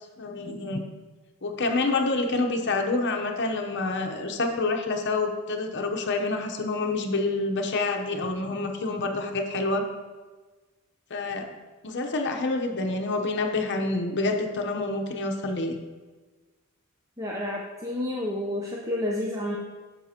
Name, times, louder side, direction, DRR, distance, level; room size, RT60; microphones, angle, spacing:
voice 1, 0.2-0.8 1.4-9.8 11.1-11.5 11.8-15.8, left 3 dB, 55° left, 4 dB, 0.8 m, -27 dB
voice 2, 17.2-19.6, left 1 dB, 15° right, -3 dB, 0.6 m, -30 dB
9.1 x 6.9 x 2.8 m, 1.3 s
head